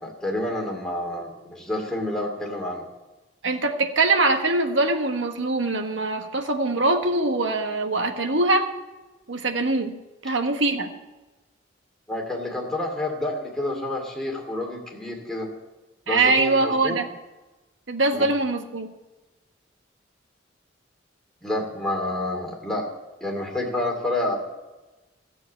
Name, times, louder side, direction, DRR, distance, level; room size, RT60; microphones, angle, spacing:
voice 1, 0.0-2.8 12.1-15.5 16.1-17.0 18.1-18.3 21.4-22.9 23.2-24.4, left 1 dB, 5° left, -1 dB, 2.6 m, -29 dB
voice 2, 3.4-8.6 9.3-9.9 10.2-10.9 16.1-17.0 17.9-18.9, right 2 dB, 75° right, 4 dB, 1.4 m, -22 dB
14.0 x 7.6 x 8.5 m, 1.1 s
head